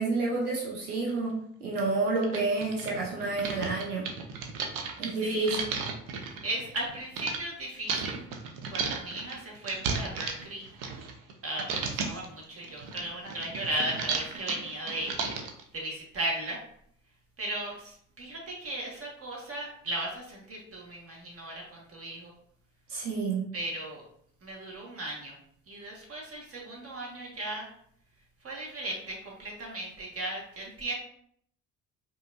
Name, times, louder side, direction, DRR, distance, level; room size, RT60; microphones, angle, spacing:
voice 1, 0.0-1.3 1.6-4.1 5.0-5.6 22.9-23.5, right 3 dB, 85° right, -3 dB, 0.8 m, -29 dB
sound 1, 1.1-1.2 1.8-1.9 2.2-7.4 7.9-11.3 11.6-12.3 12.6-15.6, right 5 dB, 50° right, 0.8 m, -34 dB
voice 2, 5.1-5.6 6.4-8.2 8.7-10.7 11.4-15.2 15.7-16.6 17.4-22.3 23.5-24.0 24.4-25.4 25.7-27.7 28.4-30.9, right 1 dB, 30° right, -2 dB, 1.5 m, -36 dB
5.0 x 2.8 x 2.5 m, 0.67 s
figure-of-eight pair, 55°, 43 cm